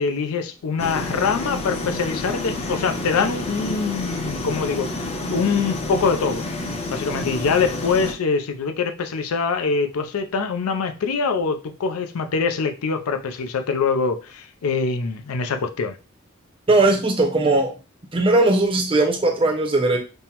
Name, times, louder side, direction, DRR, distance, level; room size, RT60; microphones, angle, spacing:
voice 1, 0.0-6.4 6.9-16.0, left 5 dB, 80° left, 0.4 m, -24 dB
sound 1, 0.8-8.1, left 2 dB, 30° left, 0.5 m, -29 dB
voice 2, 16.7-17.7 18.1-20.0, right 2 dB, 25° right, 0.6 m, -18 dB
5.3 x 2.1 x 2.9 m
head